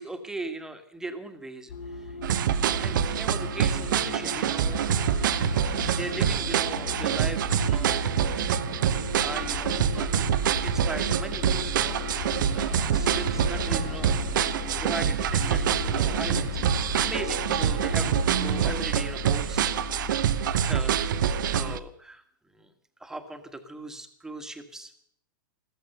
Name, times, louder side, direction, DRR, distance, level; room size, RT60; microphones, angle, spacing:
voice 1, 0.0-2.2 2.6-4.9 5.5-8.0 9.2-10.3 10.6-12.0 12.3-14.2 14.7-16.6 17.0-19.7 20.5-22.2 22.5-22.7 23.0-24.9, right 2 dB, 5° right, 8 dB, 1.6 m, -39 dB
sound 1, 1.7-18.8, left 5 dB, 50° left, 1.5 m, -37 dB
sound 2, 2.2-21.8, right 10 dB, 65° right, 0.8 m, -26 dB
sound 3, 8.8-21.8, left 11 dB, 30° left, 1.9 m, -39 dB
14.5 x 14.0 x 6.7 m, 0.63 s
hypercardioid pair, 115°, 11 cm